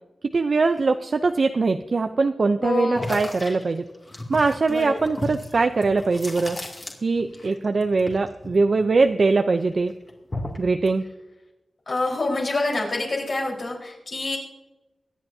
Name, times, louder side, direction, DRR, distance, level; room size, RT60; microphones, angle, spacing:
voice 1, 0.2-3.9 4.3-6.6 7.0-9.9 10.6-11.0, right 3 dB, 60° right, 7 dB, 0.5 m, -22 dB
voice 2, 2.6-3.1 4.7-4.9 11.9-14.4, left 2 dB, 60° left, -2 dB, 4.2 m, -26 dB
sound 1, 2.9-7.5 7.7-9.4 9.7-10.7, left 1 dB, 35° left, 2.4 m, -34 dB
23.5 x 9.4 x 2.7 m, 1.0 s
wide cardioid pair, 95°, 0 cm